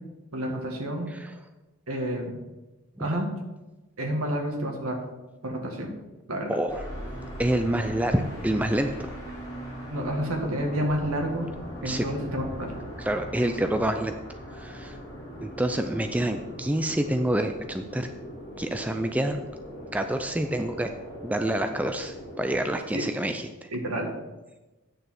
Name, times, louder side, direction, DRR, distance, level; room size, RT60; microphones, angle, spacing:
voice 1, 0.3-1.1 1.9-2.4 3.0-3.3 4.0-4.9 5.4-5.9 6.3-6.6 9.9-11.5 11.8-12.7 22.9-23.0 23.7-24.1, equal, 75° right, 2 dB, 1.9 m, -29 dB
voice 2, 6.5-6.8 7.4-8.9 11.8-12.1 13.0-14.2 14.5-15.0 15.4-18.1 18.6-19.4 19.9-20.9 21.2-23.7, right 1 dB, 5° right, 6 dB, 0.4 m, -27 dB
sound 1, 6.7-22.8, equal, 15° left, 3.1 m, -40 dB
9.2 x 6.7 x 6.0 m, 1.1 s
head